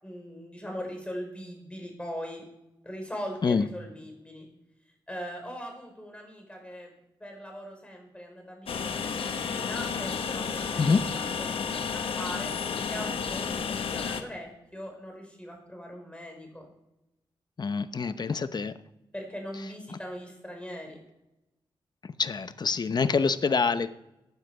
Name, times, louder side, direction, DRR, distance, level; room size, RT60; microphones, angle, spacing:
voice 1, 0.0-2.4 2.8-4.5 5.1-6.9 7.2-10.9 11.5-11.9 12.2-12.5 12.9-16.6 19.1-21.0, equal, 10° left, 2 dB, 5.0 m, -40 dB
Train, 8.7-14.2, left 6 dB, 75° left, 1.1 m, -32 dB
voice 2, 17.6-18.7 19.9-20.0 22.2-23.9, left 5 dB, 50° left, 12 dB, 0.9 m, -26 dB
15.5 x 9.2 x 4.9 m, 0.90 s
cardioid pair, 70°, 9 cm